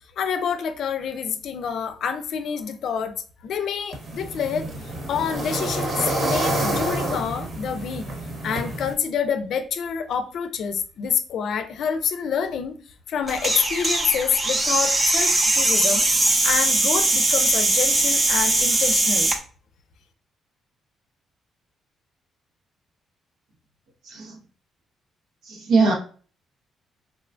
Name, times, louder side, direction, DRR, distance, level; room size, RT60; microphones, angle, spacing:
voice 1, 0.2-3.2 3.4-4.6 5.1-8.1 8.4-12.8 13.1-16.1 16.4-19.3, left 7 dB, 70° left, 9 dB, 0.4 m, -27 dB
sound 1, 3.9-8.9, right 1 dB, 50° right, 1.1 m, -28 dB
sound 2, 13.3-19.4, right 2 dB, 25° right, 0.6 m, -21 dB
voice 2, 24.0-24.4 25.4-25.9, right 3 dB, 80° right, -1 dB, 0.8 m, -21 dB
3.7 x 2.2 x 2.4 m, 0.40 s
cardioid pair, 90°, 0 cm